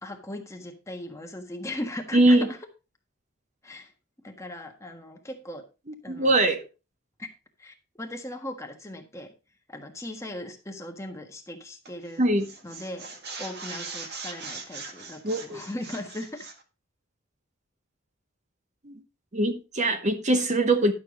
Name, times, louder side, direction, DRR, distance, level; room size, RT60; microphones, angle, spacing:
voice 1, 0.0-2.4 3.6-3.9 4.2-5.6 6.0-6.4 7.2-7.3 7.6-9.3 9.7-12.2 12.6-13.0 13.4-16.5, left 1 dB, 15° left, 1.4 m, -38 dB
voice 2, 2.1-2.5 6.1-6.6 12.2-12.5 15.2-15.6 18.8-19.0 19.3-20.9, right 1 dB, 35° right, 0.9 m, -22 dB
sound 1, 11.8-12.1 12.4-16.6, right 4 dB, 50° right, 1.7 m, -40 dB
11.5 x 6.9 x 3.8 m
head